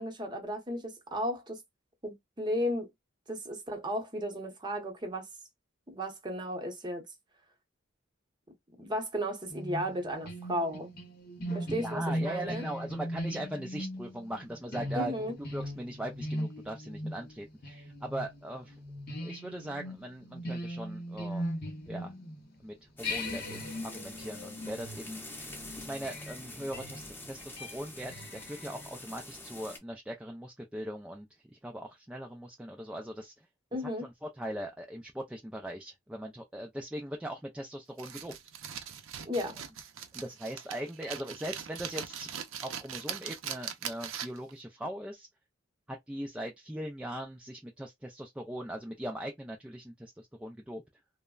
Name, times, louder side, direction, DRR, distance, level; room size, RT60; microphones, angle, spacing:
voice 1, 0.0-1.6 2.0-2.9 3.3-5.3 5.9-7.0 8.8-10.9 11.5-12.6 14.9-15.3 33.7-34.1 39.2-39.6, equal, 20° right, 0.8 m, -34 dB
sound 1, 9.5-22.6 23.0-28.9, equal, 50° left, 0.8 m, -39 dB
voice 2, 11.4-18.8 19.2-21.5 21.9-22.1 22.6-33.5 34.0-38.3 40.1-42.3 42.6-45.3 45.9-50.8, right 1 dB, 5° right, 0.3 m, -40 dB
sound 2, 23.0-29.8, left 1 dB, 10° left, 0.7 m, -46 dB
sound 3, 38.0-44.5, right 8 dB, 80° right, 0.5 m, -41 dB
3.2 x 2.0 x 2.3 m
head